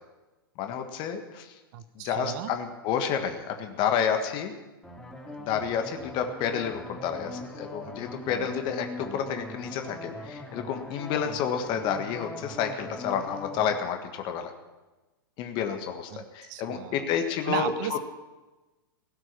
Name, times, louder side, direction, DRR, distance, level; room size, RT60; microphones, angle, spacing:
voice 1, 0.6-1.5 2.0-4.5 5.4-14.5 15.4-18.0, left 7 dB, 40° left, 6 dB, 1.6 m, -30 dB
voice 2, 1.7-2.5 16.1-17.0 17.5-18.0, right 12 dB, 50° right, 14 dB, 0.8 m, -35 dB
sound 1, 4.8-13.7, left 1 dB, 5° left, 2.6 m, -41 dB
17.0 x 6.3 x 9.8 m, 1.1 s
hypercardioid pair, 105°, 12 cm